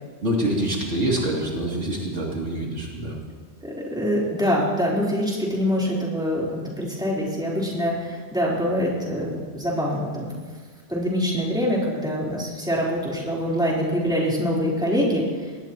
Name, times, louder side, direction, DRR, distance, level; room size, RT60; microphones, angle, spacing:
voice 1, 0.2-3.2, right 1 dB, 80° right, -3 dB, 3.3 m, -25 dB
voice 2, 3.6-10.3 10.9-15.3, equal, 5° right, -6 dB, 4.0 m, -24 dB
23.5 x 18.5 x 3.1 m, 1.5 s
omnidirectional pair, 1.2 m